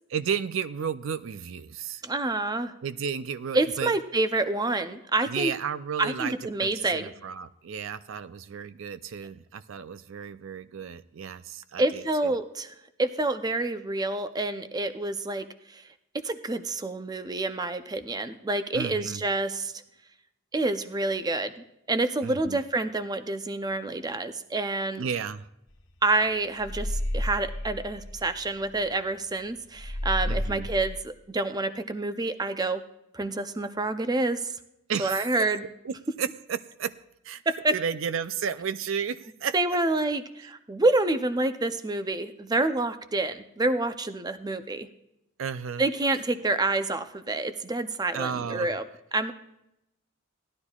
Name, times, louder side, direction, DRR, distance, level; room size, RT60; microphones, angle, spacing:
voice 1, 0.1-2.0 2.8-3.9 5.3-12.3 18.7-19.2 22.2-22.6 25.0-25.5 30.2-30.7 34.9-35.6 35.8-36.9 37.2-37.4 37.7-39.5 40.4-40.5 45.4-45.9 48.1-48.7, right 7 dB, 65° right, 14 dB, 0.4 m, -33 dB
voice 2, 2.0-2.7 3.5-5.5 6.0-7.1 11.8-12.7 13.0-15.8 16.1-19.7 20.5-21.5 21.9-25.1 26.0-32.8 33.1-34.5 35.0-35.6 37.5-37.8 39.5-44.9 45.8-48.8 49.1-49.3, right 2 dB, 20° right, 10 dB, 0.5 m, -28 dB
sound 1, 25.7-25.9 26.2-29.0 29.3-29.4 29.8-31.0, left 1 dB, 70° left, 1.5 m, -32 dB
17.5 x 11.5 x 2.4 m, 0.85 s
head